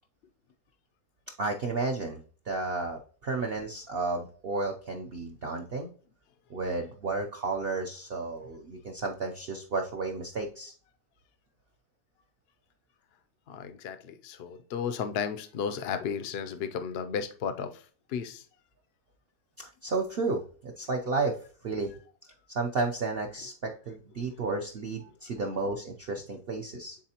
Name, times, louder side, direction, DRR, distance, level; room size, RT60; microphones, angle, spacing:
voice 1, 1.4-2.2 2.5-5.9 6.5-10.7 19.6-21.3 21.6-21.9 22.5-27.0, right 3 dB, 65° right, 0.5 m, -32 dB
voice 2, 13.5-17.8 18.1-18.4, left 7 dB, 80° left, 0.5 m, -34 dB
9.9 x 4.1 x 2.9 m
omnidirectional pair, 1.8 m